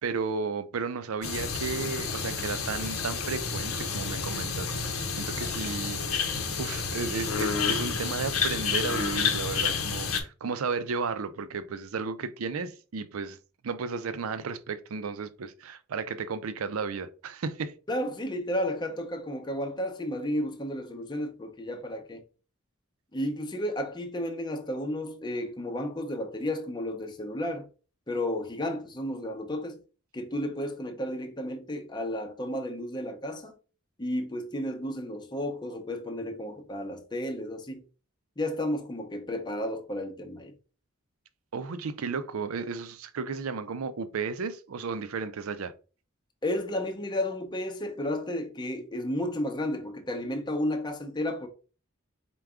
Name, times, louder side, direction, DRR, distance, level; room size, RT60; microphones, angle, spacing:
voice 1, 0.0-4.7 5.2-6.3 6.6-13.4 13.6-17.7 41.5-45.7, right 5 dB, 85° right, 0.5 m, -33 dB
sound 1, 1.2-10.2, left 5 dB, 90° left, 0.8 m, -30 dB
voice 2, 17.9-22.2 23.1-27.7 28.1-29.8 30.1-33.5 34.0-37.8 38.4-40.5 46.4-51.5, left 1 dB, 20° left, 0.7 m, -32 dB
4.6 x 2.3 x 3.5 m
head